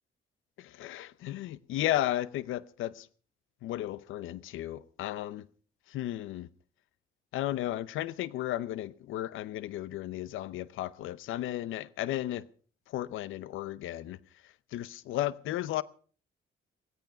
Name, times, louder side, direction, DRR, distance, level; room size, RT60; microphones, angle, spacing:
voice 1, 0.6-3.1 3.6-5.5 5.9-6.5 7.3-12.5 12.9-14.2 14.7-15.8, left 13 dB, 85° left, 0.7 m, -34 dB
16.5 x 15.0 x 5.4 m
cardioid pair, 90°, 20 cm